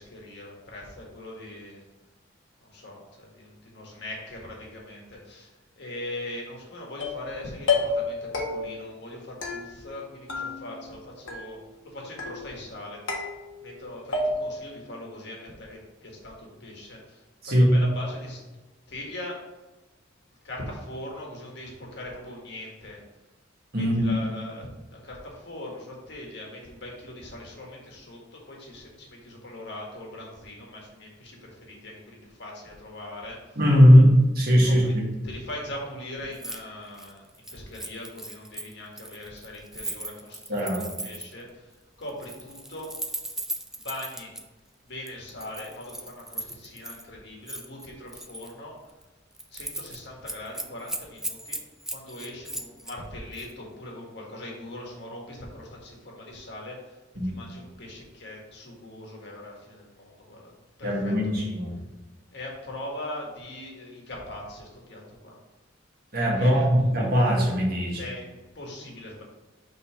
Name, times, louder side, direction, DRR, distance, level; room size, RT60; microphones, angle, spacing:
voice 1, 0.0-1.8 2.6-13.3 13.6-18.4 18.9-19.4 20.4-23.0 23.7-33.6 34.6-34.9 35.2-42.9 43.8-44.3 44.8-48.8 49.5-51.6 51.9-60.5 60.8-61.5 62.3-65.4 66.3-66.9 67.9-69.2, left 1 dB, 60° left, -1 dB, 1.7 m, -41 dB
sound 1, 7.0-7.3 7.7-8.1 8.3-8.9 9.4-10.0 10.3-11.0 11.3-11.8 12.2-12.7 13.1-13.8 14.1-14.7, left 3 dB, 75° left, 1.3 m, -30 dB
voice 2, 23.7-24.1 33.5-35.0 40.5-40.9 57.2-57.3 60.8-61.7 66.1-68.0, equal, 50° right, -3 dB, 1.8 m, -19 dB
Keys jangling, 36.3-36.6 36.9-41.4 42.1-44.4 45.1-47.0 47.5-48.5 48.9-49.0 49.3-50.0 50.3-53.0 53.3-53.5, right 1 dB, ahead, 0.3 m, -37 dB
5.5 x 3.9 x 5.7 m, 1.1 s
head